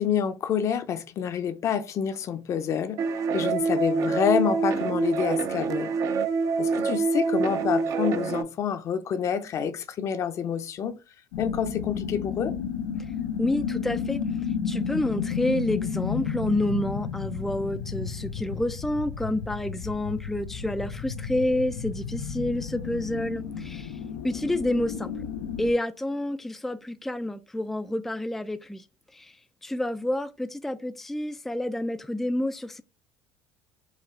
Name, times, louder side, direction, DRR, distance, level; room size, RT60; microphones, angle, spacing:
voice 1, 0.0-3.0 3.3-5.9 6.6-11.0 11.4-12.6, left 8 dB, 45° left, 0.6 m, -28 dB
sound 1, 3.0-8.4, right 5 dB, 50° right, 0.6 m, -26 dB
sound 2, 11.3-25.7, left 7 dB, 90° left, 0.5 m, -32 dB
voice 2, 13.4-25.3 25.6-28.9 29.1-32.8, left 1 dB, 5° left, 0.3 m, -29 dB
4.9 x 2.3 x 4.5 m
supercardioid pair, 95°, 7 cm